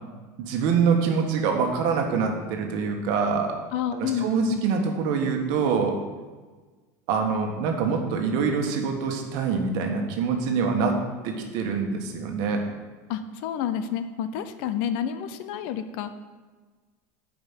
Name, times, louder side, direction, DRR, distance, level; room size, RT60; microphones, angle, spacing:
voice 1, 0.4-3.6 3.9-6.0 7.1-12.7, right 5 dB, 50° right, 3 dB, 1.4 m, -25 dB
voice 2, 3.7-4.6 13.1-16.1, left 9 dB, 55° left, 10 dB, 0.7 m, -29 dB
9.1 x 5.1 x 7.6 m, 1.4 s
supercardioid pair, 165°, 9 cm